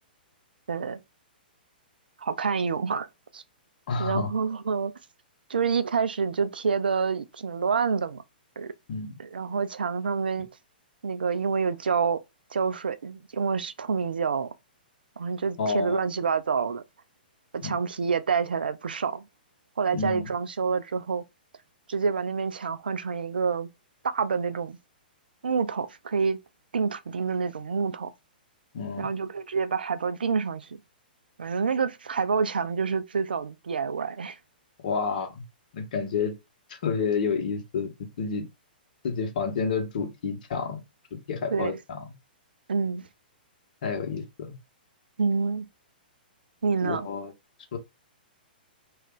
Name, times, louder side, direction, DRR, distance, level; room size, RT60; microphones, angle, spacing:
voice 1, 0.7-1.0 2.2-3.1 3.3-3.4 4.0-4.9 5.5-8.2 8.6-8.7 9.2-10.5 11.0-12.2 12.5-14.5 15.2-16.8 17.5-19.2 19.8-21.2 21.9-23.7 24.0-24.8 25.4-26.4 26.7-28.1 29.0-30.7 31.4-34.4 41.5-41.7 42.7-43.0 45.2-45.7 46.6-47.1, right 5 dB, 70° right, 0.4 m, -27 dB
voice 2, 3.9-4.3 8.9-9.2 15.6-16.0 17.6-17.8 19.9-20.3 28.7-29.1 34.8-35.4 35.7-36.4 36.7-38.4 39.0-40.8 41.1-42.0 43.8-44.6 46.8-47.3 47.7-47.8, left 5 dB, 55° left, 0.9 m, -29 dB
2.5 x 2.3 x 3.7 m
figure-of-eight pair, 115°, 5 cm